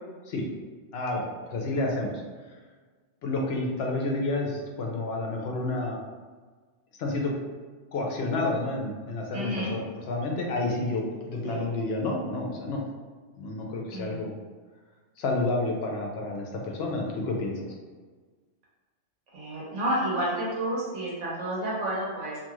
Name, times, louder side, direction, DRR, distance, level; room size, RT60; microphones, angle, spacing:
voice 1, 0.9-2.1 3.2-6.0 7.0-7.3 7.9-12.8 13.3-14.3 15.2-17.7, left 2 dB, 65° left, 0 dB, 0.8 m, -30 dB
voice 2, 9.3-9.7 11.4-11.6 13.9-14.3 19.3-22.4, right 1 dB, 80° right, -6 dB, 1.2 m, -30 dB
2.6 x 2.3 x 3.0 m, 1.4 s
omnidirectional pair, 1.2 m